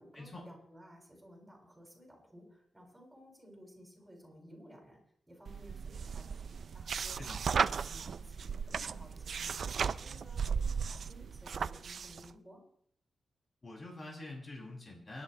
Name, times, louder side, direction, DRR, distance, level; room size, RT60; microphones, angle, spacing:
voice 1, 0.0-5.0 5.3-6.4 6.7-7.3 7.8-12.6, equal, 10° right, -2 dB, 7.6 m, -56 dB
sound 1, 5.5-12.3, right 6 dB, 65° right, 0.5 m, -36 dB
voice 2, 13.6-15.2, left 2 dB, 35° left, -2 dB, 7.6 m, -46 dB
29.5 x 12.0 x 3.4 m, 0.64 s
wide cardioid pair, 115°, 0 cm